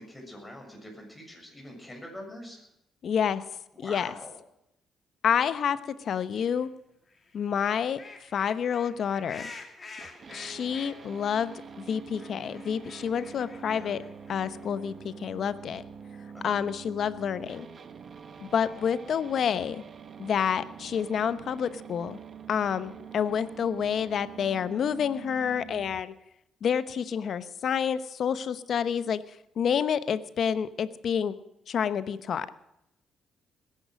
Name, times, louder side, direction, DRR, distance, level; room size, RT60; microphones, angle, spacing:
voice 1, 0.0-2.6 3.7-4.3 13.6-13.9 16.3-16.5, left 1 dB, 10° left, 1 dB, 6.9 m, -44 dB
voice 2, 3.0-3.4 3.8-4.1 5.2-6.7 7.3-8.0 8.3-9.5 10.3-14.0 14.3-15.8 16.4-17.7 18.4-19.8 20.2-22.2 22.5-26.1 26.6-29.2 29.6-31.4 31.7-32.6, left 7 dB, 60° left, 14 dB, 0.9 m, -28 dB
sound 1, 6.4-6.7 7.1-11.4 11.6-11.7 11.9-14.7, left 3 dB, 30° left, 2.8 m, -47 dB
sound 2, 10.0-26.0, right 6 dB, 45° right, 1.3 m, -46 dB
20.0 x 10.5 x 6.4 m, 0.81 s
cardioid pair, 90°, 0 cm